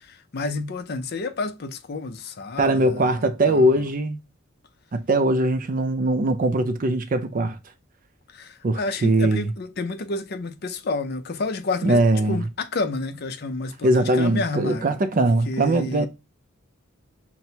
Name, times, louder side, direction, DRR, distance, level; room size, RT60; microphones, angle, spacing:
voice 1, 0.0-3.9 8.3-16.1, left 3 dB, 50° left, 0.5 m, -30 dB
voice 2, 2.6-4.2 4.9-7.6 8.6-9.5 11.8-12.4 13.8-16.1, right 1 dB, 40° right, 0.4 m, -21 dB
5.9 x 2.1 x 2.7 m
head